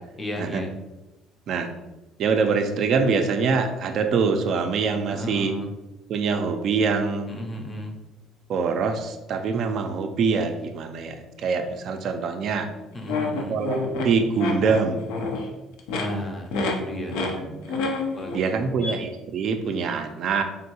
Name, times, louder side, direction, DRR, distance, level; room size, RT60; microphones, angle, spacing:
voice 1, 0.2-0.7 5.1-5.7 7.3-8.0 12.9-13.6 16.0-17.2 18.1-19.0, equal, 20° left, 2 dB, 0.5 m, -34 dB
voice 2, 2.2-5.5 6.1-7.3 8.5-12.7 13.5-13.8 14.0-15.1 17.5-17.8 18.3-20.4, right 5 dB, 55° right, 6 dB, 0.3 m, -24 dB
sound 1, 13.1-15.5 15.8-16.0 16.5-16.7 17.1-17.4 17.6-18.5 18.8-18.9, left 3 dB, 85° left, 0.5 m, -27 dB
3.5 x 2.2 x 2.8 m, 1.0 s
cardioid pair, 125°, 0 cm